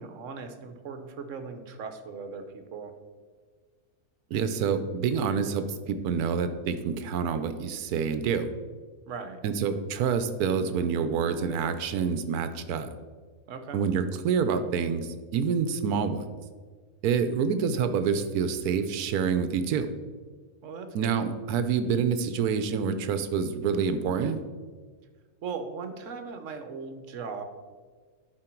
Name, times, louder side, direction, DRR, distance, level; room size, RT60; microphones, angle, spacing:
voice 1, 0.0-2.9 9.1-9.4 13.5-13.8 20.6-21.2 25.4-27.4, right 5 dB, 60° right, 8 dB, 1.1 m, -38 dB
voice 2, 4.3-8.5 9.4-12.9 13.7-16.3 17.0-19.9 20.9-24.4, right 6 dB, 90° right, 10 dB, 1.2 m, -27 dB
11.5 x 4.7 x 4.5 m, 1.5 s
omnidirectional pair, 1.6 m